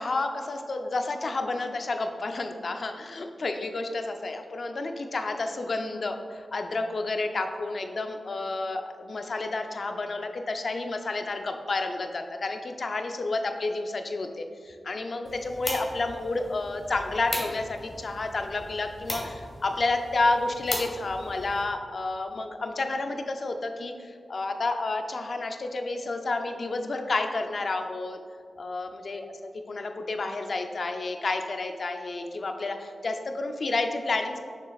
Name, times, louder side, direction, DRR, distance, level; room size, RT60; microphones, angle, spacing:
voice 1, 0.0-28.2 28.6-29.3 29.7-34.4, left 3 dB, 50° left, 5 dB, 0.4 m, -30 dB
sound 1, 15.2-21.6, left 1 dB, 35° left, 1.2 m, -38 dB
6.6 x 6.1 x 2.4 m, 2.1 s
wide cardioid pair, 125°, 0 cm